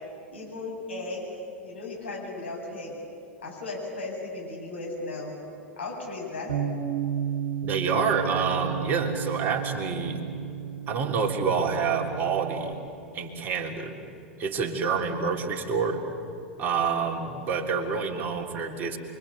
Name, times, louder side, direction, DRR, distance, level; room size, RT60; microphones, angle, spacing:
voice 1, 0.3-1.3 1.6-2.9 3.4-5.3 5.8-6.5, left 2 dB, 75° left, -2 dB, 8.0 m, -36 dB
Bass guitar, 6.5-12.7, right 8 dB, 65° right, 2.3 m, -33 dB
voice 2, 7.6-10.2 10.9-12.7 13.1-14.0 14.4-16.0 16.6-19.0, right 5 dB, 30° right, 1 dB, 3.4 m, -27 dB
28.5 x 24.0 x 8.6 m, 2.7 s
figure-of-eight pair, 85°, 6 cm